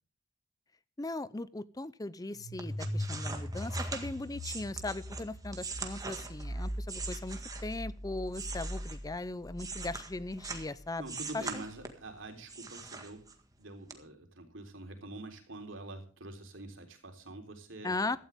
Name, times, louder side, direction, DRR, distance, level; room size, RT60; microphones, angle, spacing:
voice 1, 1.0-11.6 17.8-18.2, left 2 dB, 20° left, 17 dB, 0.5 m, -38 dB
sound 1, 2.3-11.0, equal, 70° left, 5.5 m, -40 dB
sound 2, 2.6-7.9 8.3-10.7 11.0-12.1 12.5-13.5 13.9-14.0, right 4 dB, 20° right, 1.8 m, -42 dB
voice 2, 11.0-13.2 13.6-18.2, right 2 dB, 70° right, 4 dB, 3.6 m, -46 dB
16.0 x 13.0 x 3.6 m, 0.39 s
head